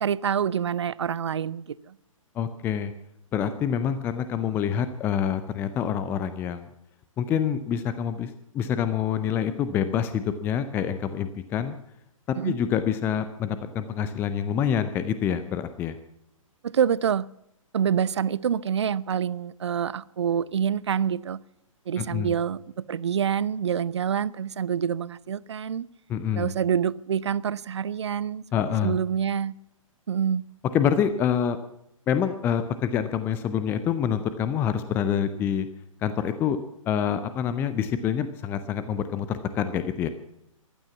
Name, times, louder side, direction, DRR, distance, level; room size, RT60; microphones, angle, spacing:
voice 1, 0.0-1.9 12.4-12.6 16.6-17.3 17.7-21.4 21.9-25.9 26.3-28.4 28.8-29.5 30.1-30.4, right 8 dB, 55° right, 0.5 m, -26 dB
voice 2, 2.4-2.9 3.3-6.7 7.2-11.8 12.4-16.0 22.0-22.3 26.1-26.5 28.5-29.0 30.7-31.6 32.1-35.7 36.0-36.6 36.9-40.1, left 8 dB, 10° left, 0.5 m, -26 dB
15.0 x 11.5 x 7.1 m
figure-of-eight pair, 125°, 18 cm